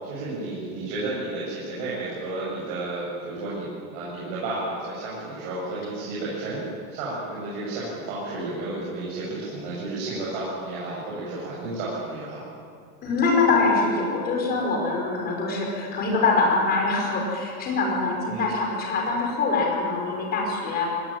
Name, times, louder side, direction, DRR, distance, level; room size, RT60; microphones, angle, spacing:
voice 1, 0.0-6.6 6.9-12.5 18.2-18.5, right 2 dB, 40° right, -7 dB, 7.7 m, -32 dB
voice 2, 13.0-20.9, left 3 dB, 20° left, 0 dB, 5.6 m, -24 dB
24.0 x 19.5 x 9.1 m, 2.2 s
supercardioid pair, 165°, 44 cm